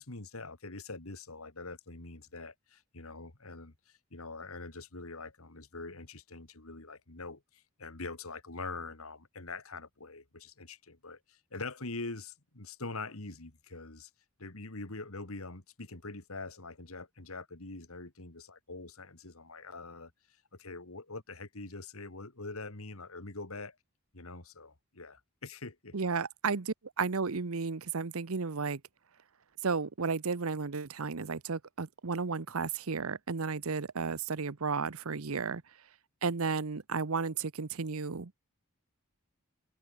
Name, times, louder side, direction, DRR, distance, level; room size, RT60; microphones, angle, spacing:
voice 1, 0.0-14.1 14.4-20.1 20.5-23.8 24.1-26.0, left 3 dB, 70° left, 2.4 m, -44 dB
voice 2, 25.9-28.8 29.6-35.6 36.2-38.4, right 4 dB, 70° right, 0.9 m, -33 dB
head